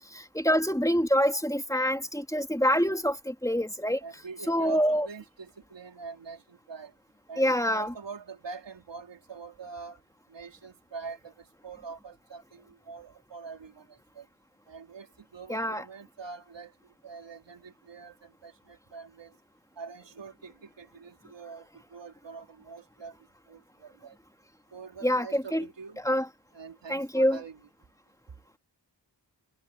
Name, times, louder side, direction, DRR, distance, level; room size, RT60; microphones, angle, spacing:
voice 1, 0.1-4.0 4.5-5.1 7.4-7.9 15.5-15.8 25.0-25.6 26.0-26.3 26.9-27.4, equal, 10° left, 2.9 m, -26 dB
voice 2, 4.0-6.9 7.3-10.0 10.3-14.3 14.7-16.7 17.0-19.3 19.8-23.2 23.5-24.2 24.7-26.0 26.5-27.7, right 5 dB, 90° right, 3.9 m, -44 dB
cardioid pair, 45°, 42 cm